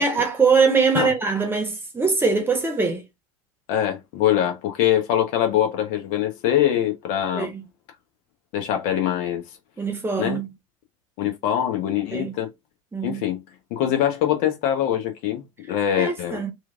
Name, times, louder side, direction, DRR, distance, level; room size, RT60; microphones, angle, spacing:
voice 1, 0.0-3.0 7.3-7.6 9.8-10.5 12.1-12.3 12.9-13.2 16.0-16.5, right 4 dB, 15° right, 0.9 m, -22 dB
voice 2, 3.7-7.5 8.5-9.4 10.2-10.4 11.2-12.5 13.0-13.4 13.7-16.4, left 11 dB, 55° left, 1.0 m, -23 dB
3.1 x 2.5 x 2.4 m
figure-of-eight pair, 75°, 17 cm